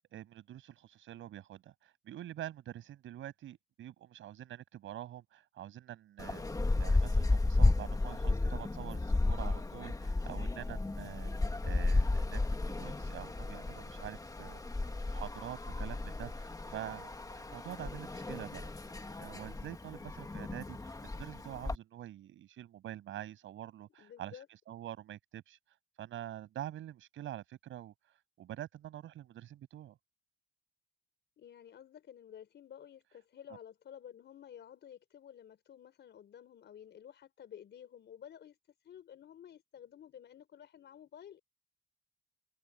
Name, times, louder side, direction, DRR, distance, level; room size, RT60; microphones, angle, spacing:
voice 1, 0.0-12.4 12.7-14.6 15.0-18.8 19.2-25.6 26.0-30.0, right 12 dB, 80° right, 6.7 m, -46 dB
sound 1, 6.2-21.8, left 2 dB, 15° left, 1.9 m, -33 dB
voice 2, 24.0-24.5 31.4-38.6 38.8-41.4, left 9 dB, 65° left, 4.7 m, -52 dB
cardioid pair, 90°, 20 cm